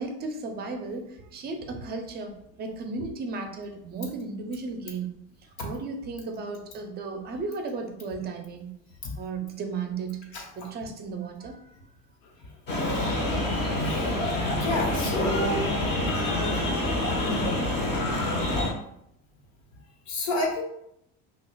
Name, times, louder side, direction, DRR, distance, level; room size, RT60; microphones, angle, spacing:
voice 1, 0.0-5.2 5.6-8.7 9.2-11.7, right 4 dB, 30° right, 5 dB, 0.5 m, -35 dB
sound 1, 12.7-18.7, left 1 dB, 30° left, 0.9 m, -27 dB
voice 2, 13.8-14.1 14.6-15.7 20.1-20.6, left 1 dB, 70° left, 0 dB, 1.2 m, -28 dB
5.9 x 2.4 x 2.2 m, 0.76 s
cardioid pair, 140°, 33 cm